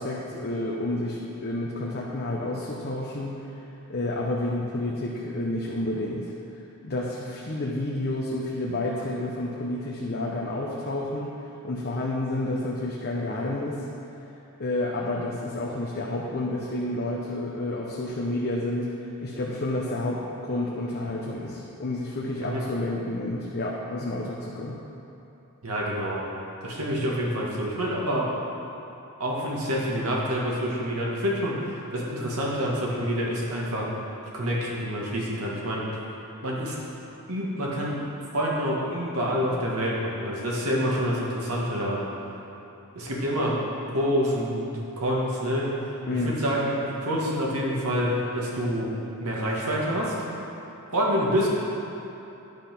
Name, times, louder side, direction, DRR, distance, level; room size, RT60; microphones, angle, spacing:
voice 1, 0.0-3.4 3.9-6.3 6.8-11.4 11.6-13.8 14.6-24.8 46.1-46.4, left 1 dB, 45° left, -4 dB, 0.9 m, -30 dB
voice 2, 25.6-26.2 26.6-28.3 29.2-33.9 34.3-35.8 36.4-36.8 37.3-38.1 38.3-42.0 42.9-43.6 43.9-44.7 45.0-45.7 46.1-48.9 49.2-50.1 50.9-51.5, equal, 80° right, -4 dB, 1.9 m, -27 dB
10.5 x 5.6 x 6.0 m, 3.0 s
head